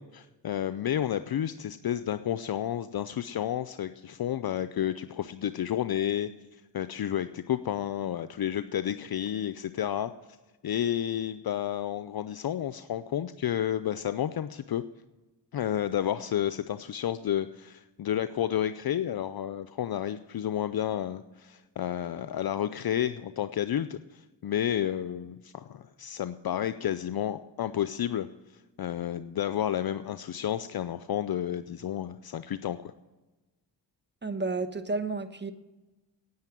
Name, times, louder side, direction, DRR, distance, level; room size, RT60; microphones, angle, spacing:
voice 1, 0.0-10.1 10.6-14.8 15.5-28.3 28.8-32.9, left 10 dB, 55° left, 12 dB, 0.6 m, -31 dB
voice 2, 34.2-35.5, right 3 dB, 25° right, 11 dB, 1.1 m, -31 dB
9.6 x 9.2 x 8.9 m, 1.1 s
cardioid pair, 60°, 43 cm